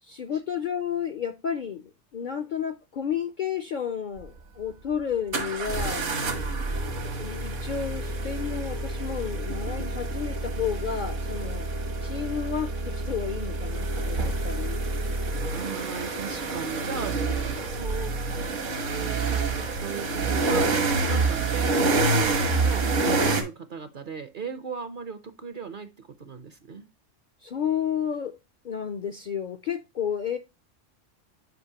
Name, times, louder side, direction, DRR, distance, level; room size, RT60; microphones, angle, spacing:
voice 1, 0.0-6.1 7.2-11.7 12.0-14.8 21.1-21.3 27.4-28.4 28.6-30.4, left 8 dB, 55° left, 0.5 m, -31 dB
sound 1, 4.2-4.3 5.3-23.4, right 3 dB, 75° right, 1.5 m, -27 dB
voice 2, 15.5-18.4 18.8-26.9, right 6 dB, 50° right, 0.7 m, -38 dB
7.9 x 5.1 x 2.8 m
omnidirectional pair, 1.3 m